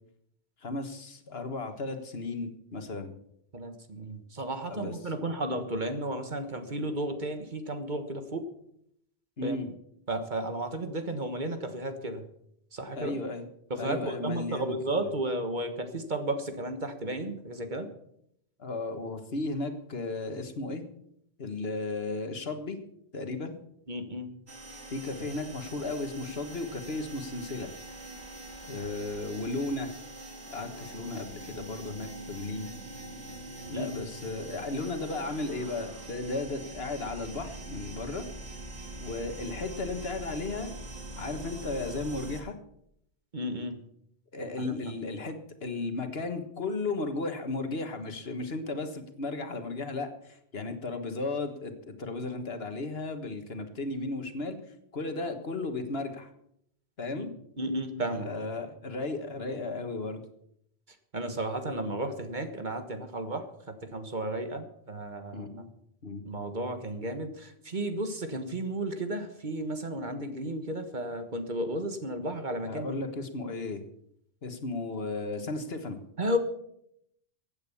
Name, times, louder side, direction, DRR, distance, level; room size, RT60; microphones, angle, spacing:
voice 1, 0.6-3.1 4.7-5.0 9.4-9.7 12.9-13.4 13.8-14.8 18.6-20.8 21.4-22.8 23.1-23.6 24.9-27.7 28.7-29.9 30.5-32.7 33.7-38.2 39.0-40.7 41.2-42.6 44.3-54.6 54.9-56.3 57.0-57.3 58.2-60.2 65.3-65.7 66.0-66.2 72.7-73.8 74.4-76.0, left 3 dB, 70° left, 7 dB, 1.8 m, -35 dB
voice 2, 3.5-8.5 9.4-9.6 10.1-12.2 12.7-13.2 13.7-17.9 23.9-24.3 33.7-34.0 43.3-43.8 44.6-44.7 57.1-57.3 57.6-58.3 61.1-65.5 66.2-73.0 76.2-76.4, right 1 dB, 45° right, 8 dB, 1.6 m, -33 dB
sound 1, 24.5-42.4, right 2 dB, 85° right, 2.8 m, -43 dB
15.5 x 8.9 x 7.1 m, 0.74 s
omnidirectional pair, 1.1 m